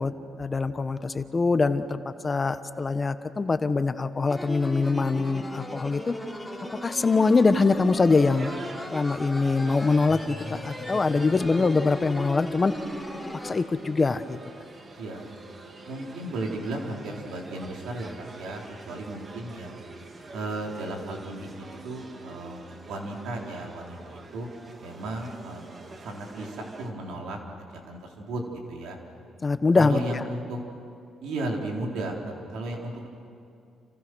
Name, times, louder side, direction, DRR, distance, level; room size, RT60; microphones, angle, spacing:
voice 1, 0.0-6.1 6.8-8.5 8.9-12.7 13.4-14.4 29.4-30.2, left 4 dB, 30° left, 10 dB, 1.2 m, -23 dB
sound 1, 4.3-13.6, left 1 dB, 5° left, 3.5 m, -37 dB
sound 2, 8.3-26.9, right 3 dB, 40° right, 2.5 m, -46 dB
voice 2, 15.8-19.8 20.3-24.5 24.8-25.6 26.0-29.0 29.7-30.6 31.2-33.1, right 2 dB, 85° right, 0 dB, 4.2 m, -35 dB
29.0 x 28.5 x 6.4 m, 2.5 s
cardioid pair, 90°, 0 cm